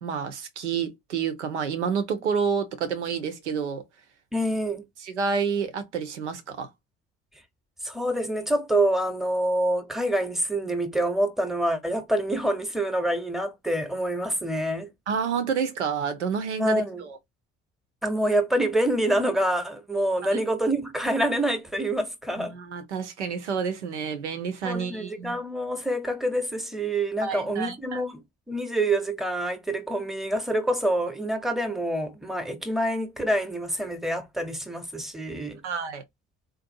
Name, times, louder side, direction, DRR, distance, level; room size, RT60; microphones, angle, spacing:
voice 1, 0.0-3.8 5.0-6.7 15.1-17.2 20.2-20.4 22.4-25.4 27.2-28.0 35.6-36.0, right 6 dB, 75° right, 0.8 m, -29 dB
voice 2, 4.3-4.8 7.8-14.9 16.6-17.0 18.0-22.5 24.6-28.2 28.5-35.6, right 1 dB, ahead, 0.9 m, -26 dB
3.9 x 2.5 x 2.6 m
figure-of-eight pair, 50°, 35 cm